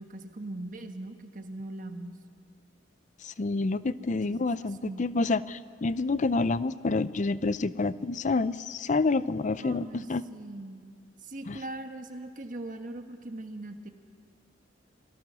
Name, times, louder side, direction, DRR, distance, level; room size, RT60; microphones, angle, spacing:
voice 1, 0.0-2.1 4.2-4.5 4.8-5.0 9.6-10.8 11.2-13.9, right 2 dB, 45° right, 6 dB, 1.4 m, -40 dB
voice 2, 3.2-10.2 11.5-11.6, left 3 dB, 40° left, 16 dB, 0.5 m, -28 dB
26.5 x 17.5 x 6.2 m, 2.2 s
head